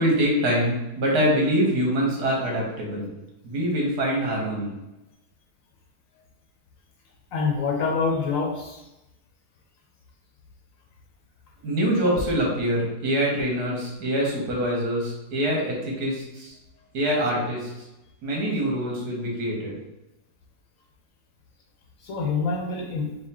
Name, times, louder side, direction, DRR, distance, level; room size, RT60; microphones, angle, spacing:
voice 1, 0.0-3.1 3.4-4.7 11.6-16.5 16.9-17.7 18.2-19.7, equal, 75° right, -2 dB, 1.7 m, -24 dB
voice 2, 7.3-8.8 22.0-23.1, left 4 dB, 70° left, 1 dB, 0.9 m, -26 dB
4.2 x 2.2 x 4.2 m, 0.97 s
omnidirectional pair, 1.7 m